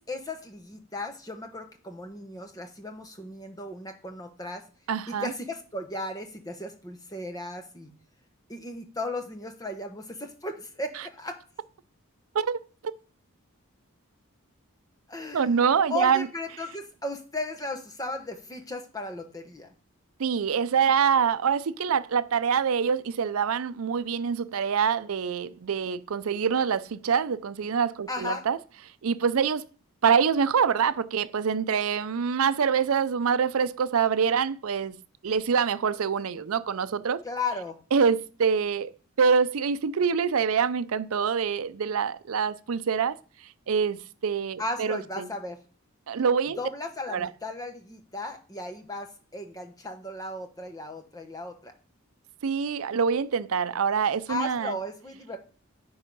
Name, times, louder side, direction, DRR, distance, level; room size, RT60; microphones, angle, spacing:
voice 1, 0.0-4.6 5.1-7.9 8.5-11.4 15.1-15.5 15.9-19.7 28.1-28.4 37.2-37.8 44.6-45.6 46.6-51.7 54.3-55.4, left 2 dB, 15° left, 0.9 m, -35 dB
voice 2, 4.9-5.3 12.3-12.6 15.3-16.3 20.2-28.6 29.0-29.6 30.0-35.0 35.2-37.2 37.9-38.9 39.2-43.2 43.7-45.3 46.1-46.6 47.1-47.3 52.4-54.7, right 6 dB, 75° right, 0.5 m, -25 dB
9.5 x 3.6 x 5.4 m
head